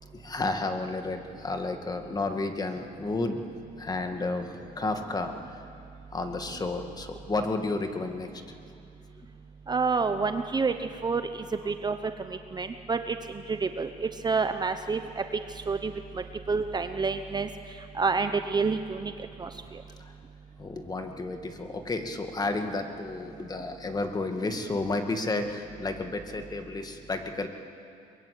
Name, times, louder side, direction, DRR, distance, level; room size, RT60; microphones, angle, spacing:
voice 1, 0.0-3.4 3.8-5.7 6.1-8.4 8.7-8.8 11.6-11.7 20.0-20.1 20.6-27.5, left 3 dB, 25° left, 5 dB, 2.1 m, -32 dB
voice 2, 9.7-11.2 11.7-12.0 12.3-13.2 13.5-15.2 15.7-17.5 17.9-19.1 19.4-19.5, right 4 dB, 25° right, 8 dB, 0.9 m, -28 dB
23.0 x 22.0 x 8.5 m, 2.5 s
cardioid pair, 110°, 17 cm